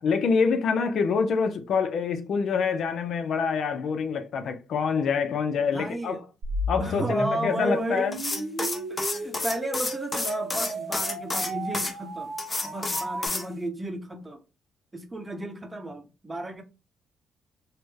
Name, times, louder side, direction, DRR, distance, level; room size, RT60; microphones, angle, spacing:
voice 1, 0.0-6.2 6.7-8.2, left 5 dB, 65° left, 0.5 m, -26 dB
voice 2, 5.7-6.2 6.8-12.3 12.6-14.4 14.9-16.6, right 1 dB, 20° right, 0.7 m, -33 dB
sound 1, 6.4-13.3, right 1 dB, 90° right, 1.2 m, -34 dB
sound 2, 8.1-11.9 12.4-13.5, left 2 dB, 25° left, 0.6 m, -30 dB
3.2 x 2.0 x 3.4 m
cardioid pair, 90°, 0 cm